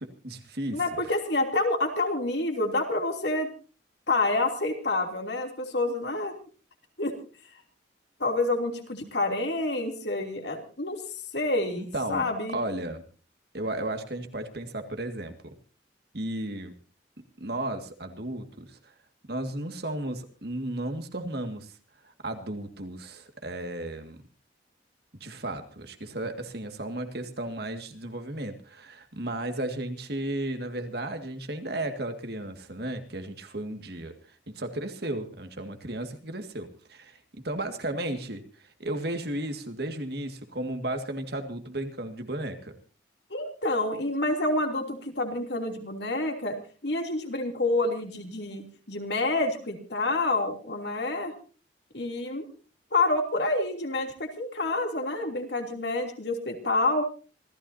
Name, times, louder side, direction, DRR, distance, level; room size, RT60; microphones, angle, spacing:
voice 1, 0.0-1.0 11.8-12.3 12.5-13.0 13.5-15.5 16.1-16.7 17.4-18.9 19.3-21.7 22.0-24.2 25.1-34.1 34.5-42.7, right 1 dB, 55° right, 6 dB, 2.1 m, -34 dB
voice 2, 0.7-3.5 4.1-6.3 7.0-7.1 8.2-12.6 43.3-46.6 46.8-51.3 51.9-52.4 52.9-57.1, left 2 dB, 65° left, 4 dB, 3.1 m, -28 dB
27.0 x 15.0 x 2.8 m, 0.36 s
head